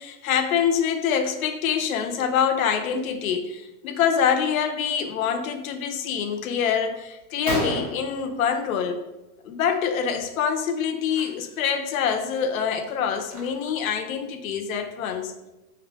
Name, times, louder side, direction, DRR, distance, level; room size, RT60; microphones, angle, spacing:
voice 1, 0.0-9.0 9.4-15.3, left 7 dB, 60° left, 7 dB, 0.5 m, -25 dB
Gunshot gunfire, 7.2-7.3 7.5-9.1 9.4-9.8 10.0-10.2 11.0-11.2 11.8-11.9 12.3-13.9, equal, 30° right, 0.3 m, -33 dB
2.8 x 2.2 x 3.9 m, 0.98 s
supercardioid pair, 175°, 47 cm